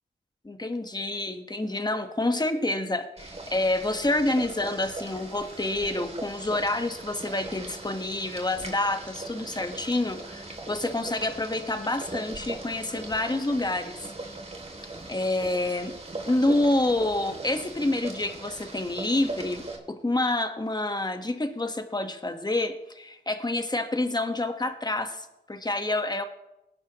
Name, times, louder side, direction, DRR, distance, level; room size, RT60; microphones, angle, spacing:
voice 1, 0.4-14.0 15.1-15.9 16.3-26.2, left 2 dB, 20° left, 7 dB, 1.3 m, -28 dB
Boiling, 3.2-19.8, right 2 dB, 35° right, 2.7 m, -40 dB
19.0 x 11.0 x 3.0 m, 0.91 s
cardioid pair, 65°, 19 cm